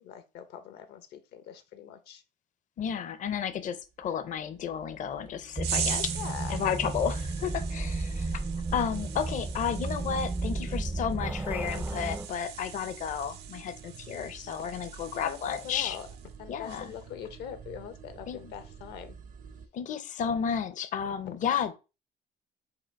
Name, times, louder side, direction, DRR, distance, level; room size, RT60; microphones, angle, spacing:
voice 1, 0.0-2.2 5.9-6.6 15.1-16.1 16.4-19.2, left 9 dB, 75° left, 0.8 m, -42 dB
voice 2, 2.8-6.1 6.5-8.4 8.7-16.0 16.5-16.9 18.3-18.5 19.7-21.7, left 8 dB, 50° left, 0.6 m, -32 dB
sound 1, 3.8-19.7, right 7 dB, 55° right, 0.6 m, -50 dB
sound 2, 5.6-12.3, right 2 dB, 10° right, 0.3 m, -33 dB
sound 3, 5.6-16.3 16.7-17.0, right 8 dB, 80° right, 0.8 m, -41 dB
4.9 x 2.4 x 4.5 m
cardioid pair, 110°, 17 cm